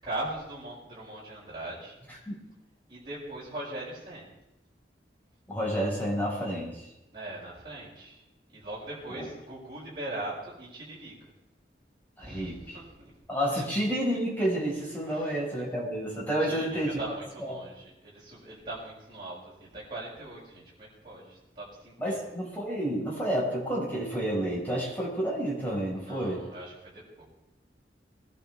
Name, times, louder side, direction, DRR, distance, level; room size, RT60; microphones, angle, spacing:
voice 1, 0.0-2.0 2.9-4.3 7.1-8.2 8.5-11.3 12.2-13.1 13.6-13.7 15.0-15.4 16.3-22.2 26.0-27.2, right 1 dB, 25° right, -10 dB, 7.1 m, -40 dB
voice 2, 5.5-6.9 9.1-9.3 12.2-12.8 13.3-16.9 17.4-17.6 22.0-26.4, equal, 10° left, -5 dB, 5.0 m, -30 dB
22.5 x 12.0 x 3.5 m, 0.92 s
head